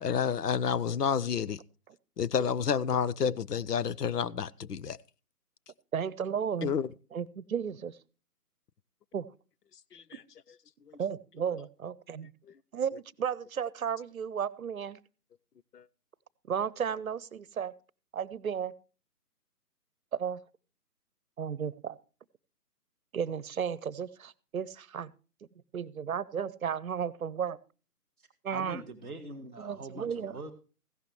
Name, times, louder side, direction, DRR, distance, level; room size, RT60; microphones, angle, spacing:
voice 1, 0.0-1.6 2.2-5.0 6.6-6.9 9.9-10.2 10.9-11.0 15.7-15.8, left 7 dB, 80° left, 0.7 m, -30 dB
voice 2, 5.9-6.7 7.1-8.0 9.1-9.3 11.0-12.3 12.7-15.0 16.5-17.7 18.1-18.7 20.1-20.4 21.4-22.0 23.1-25.1 25.7-27.6 28.4-28.8 29.6-30.3, right 7 dB, 60° right, 0.8 m, -34 dB
voice 3, 28.5-30.5, right 2 dB, 5° left, 0.6 m, -42 dB
15.5 x 11.5 x 3.1 m
figure-of-eight pair, 150°, 47 cm